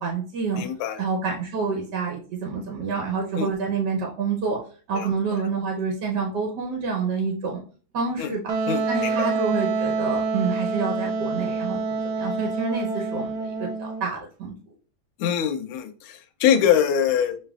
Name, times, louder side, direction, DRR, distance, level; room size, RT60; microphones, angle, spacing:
voice 1, 0.0-0.6 1.0-4.6 4.9-7.6 7.9-8.5 8.9-14.5, right 5 dB, 60° right, 1 dB, 1.3 m, -28 dB
voice 2, 0.6-1.0 3.4-3.5 4.9-5.1 8.2-8.3 8.7-9.3 15.2-17.4, left 9 dB, 85° left, 6 dB, 1.4 m, -23 dB
Wind instrument woodwind instrument, 8.5-14.0, right 4 dB, 80° right, 1.4 m, -27 dB
6.2 x 3.2 x 2.3 m, 0.39 s
omnidirectional pair, 2.3 m